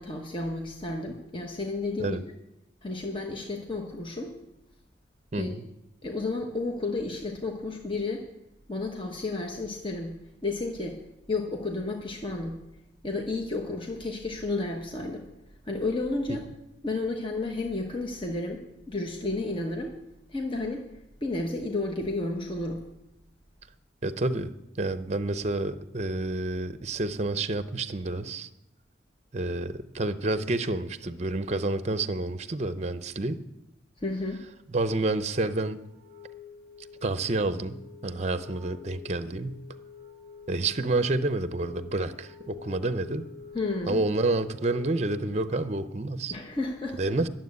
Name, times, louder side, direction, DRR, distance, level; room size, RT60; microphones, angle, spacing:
voice 1, 0.0-2.2 2.8-4.3 5.3-5.5 6.0-8.2 8.7-10.2 10.4-11.0 11.3-12.6 13.0-15.3 15.6-16.5 16.8-18.6 18.9-19.9 20.3-20.8 21.2-22.9 34.0-34.4 43.5-44.0 46.3-47.1, left 2 dB, 30° left, 1 dB, 1.1 m, -32 dB
voice 2, 5.3-5.6 24.0-24.5 24.8-28.5 29.3-33.4 34.7-35.8 37.0-37.8 38.0-39.6 40.5-43.3 43.9-46.3 47.0-47.3, right 2 dB, 40° right, 12 dB, 0.6 m, -29 dB
Wind instrument woodwind instrument, 35.9-45.7, left 6 dB, 80° left, 4.0 m, -47 dB
12.0 x 7.5 x 9.5 m, 0.90 s
head